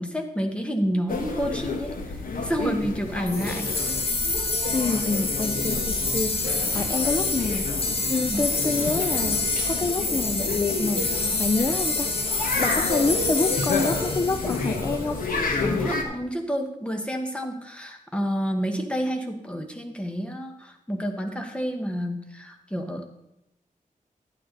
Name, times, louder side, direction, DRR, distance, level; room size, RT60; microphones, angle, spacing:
voice 1, 0.0-3.7 8.2-8.4 12.4-12.7 15.6-23.1, equal, 10° left, 4 dB, 1.1 m, -29 dB
sound 1, 1.1-16.0, left 3 dB, 80° left, 1.3 m, -30 dB
sound 2, 3.3-15.3, left 3 dB, 40° left, 1.3 m, -27 dB
voice 2, 4.7-6.4 6.7-7.7 8.1-11.1 11.4-12.1 12.6-15.3, left 3 dB, 25° left, 8 dB, 0.4 m, -27 dB
11.0 x 8.6 x 3.9 m, 0.84 s
wide cardioid pair, 145°, 14 cm